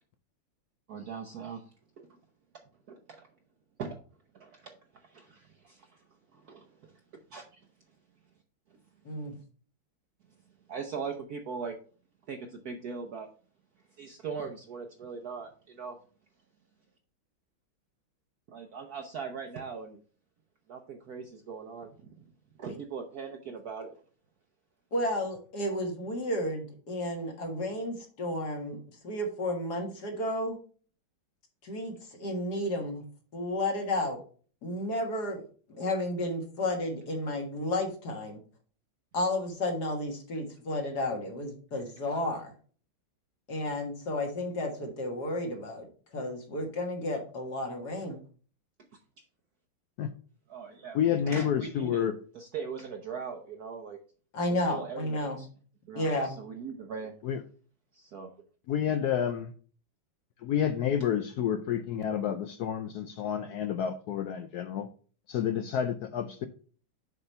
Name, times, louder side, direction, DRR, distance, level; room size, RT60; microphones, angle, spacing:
voice 1, 0.9-1.6 2.0-2.2 2.9-3.2 3.8-4.0 4.3-6.0 6.3-6.9 7.3-7.5 10.7-11.7 12.3-13.3 14.0-16.0 18.5-20.0 20.7-21.9 22.6-24.0 41.7-41.8 50.5-52.1 52.3-54.0 54.5-55.5 55.9-57.1 57.9-58.3, right 5 dB, 60° right, 1.1 m, -40 dB
voice 2, 24.9-28.8 29.0-30.6 31.6-33.0 33.3-34.2 34.6-35.4 35.7-38.4 39.1-42.5 43.5-45.9 46.1-48.2 54.3-55.4 55.9-56.4, left 1 dB, 55° left, 2.0 m, -32 dB
voice 3, 50.9-52.2 57.2-57.4 58.7-59.5 60.4-64.9 65.3-66.5, left 9 dB, 75° left, 0.9 m, -29 dB
6.7 x 4.3 x 5.4 m
omnidirectional pair, 2.2 m